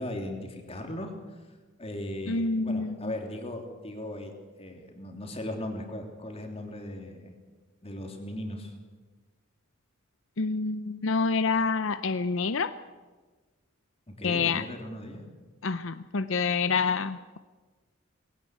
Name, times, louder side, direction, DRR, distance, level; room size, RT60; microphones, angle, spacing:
voice 1, 0.0-1.4 1.8-4.3 4.6-7.3 7.8-8.7 14.1-15.2, left 1 dB, 30° left, 3 dB, 3.2 m, -38 dB
voice 2, 2.3-3.1 10.4-12.7 14.2-14.6 15.6-17.4, left 4 dB, 65° left, 12 dB, 0.7 m, -27 dB
21.0 x 17.0 x 8.1 m, 1.3 s
head